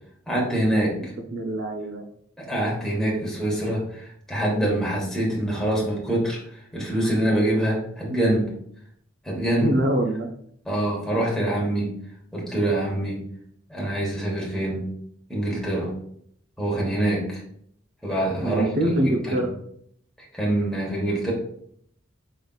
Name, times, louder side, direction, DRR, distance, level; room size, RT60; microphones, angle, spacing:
voice 1, 0.3-1.1 2.4-8.5 9.2-9.7 10.6-11.9 12.3-13.2 13.7-14.9 15.3-15.9 16.6-17.4 18.0-19.4 20.3-21.3, right 1 dB, ahead, -5 dB, 1.1 m, -25 dB
voice 2, 1.0-2.0 9.6-10.3 18.4-19.5, right 1 dB, 55° right, 4 dB, 0.6 m, -24 dB
5.0 x 3.8 x 2.3 m, 0.68 s
head